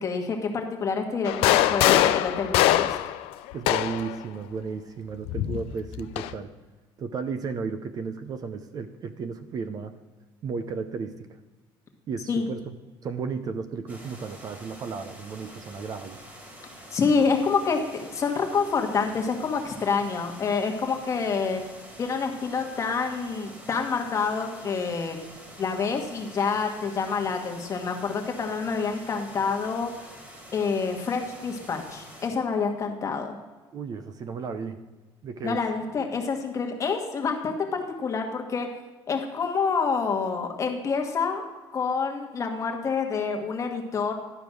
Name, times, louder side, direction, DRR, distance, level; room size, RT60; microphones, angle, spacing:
voice 1, 0.0-3.0 12.3-12.5 16.9-21.6 22.0-25.2 25.6-29.9 30.5-33.4 35.4-38.7 39.1-41.4 41.7-44.1, left 5 dB, 35° left, 3 dB, 1.3 m, -27 dB
sound 1, 1.2-4.1 5.3-6.3, left 14 dB, 80° left, 0.5 m, -23 dB
voice 2, 3.5-6.5 7.0-10.0 10.4-11.2 12.1-16.2 33.7-34.8 35.2-35.6, right 5 dB, 40° right, 10 dB, 0.6 m, -34 dB
sound 2, 13.9-32.3, equal, 20° right, 2.0 m, -47 dB
11.5 x 5.1 x 6.1 m, 1.3 s
cardioid pair, 125°, 10 cm